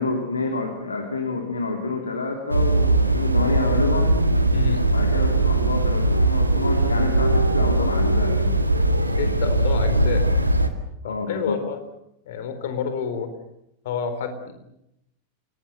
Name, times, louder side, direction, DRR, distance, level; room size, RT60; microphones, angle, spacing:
voice 1, 0.0-4.2 4.9-8.6 11.0-11.6, left 3 dB, 75° left, 3 dB, 3.0 m, -28 dB
sound 1, 2.5-10.7, right 2 dB, 85° right, 1.9 m, -20 dB
voice 2, 4.5-4.9 9.2-10.2 11.0-11.8 12.3-13.3 13.8-14.5, left 7 dB, 55° left, 8 dB, 4.1 m, -29 dB
28.0 x 20.0 x 7.7 m, 0.83 s
figure-of-eight pair, 90°, 0 cm